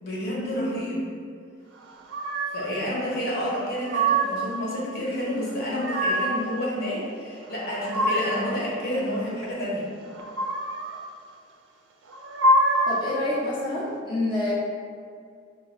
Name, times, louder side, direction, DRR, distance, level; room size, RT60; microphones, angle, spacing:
voice 1, 0.0-1.0 2.5-9.9, equal, 55° left, -6 dB, 0.9 m, -29 dB
sound 1, 2.1-2.7 3.5-4.5 5.5-6.5 7.4-8.6 10.1-11.0 12.1-13.1, right 1 dB, 70° right, 0.4 m, -25 dB
voice 2, 12.9-14.5, left 1 dB, 25° left, -10 dB, 0.6 m, -27 dB
2.7 x 2.4 x 4.0 m, 2.2 s
head